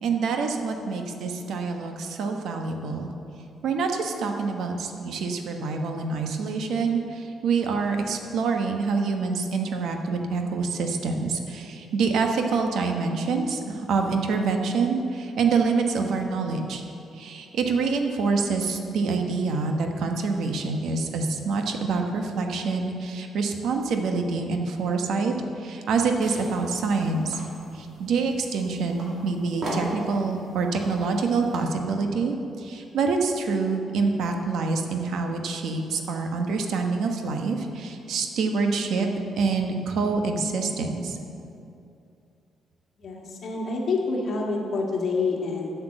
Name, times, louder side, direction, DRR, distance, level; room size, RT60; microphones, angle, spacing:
voice 1, 0.0-3.1 3.6-16.8 17.1-27.4 27.7-39.1 39.4-41.2, right 4 dB, 70° right, 4 dB, 1.0 m, -26 dB
sound 1, 25.9-31.6, right 1 dB, 45° right, 2.2 m, -39 dB
voice 2, 43.0-45.7, left 3 dB, 50° left, -1 dB, 1.7 m, -27 dB
8.1 x 6.9 x 7.7 m, 2.6 s
cardioid pair, 125°, 0 cm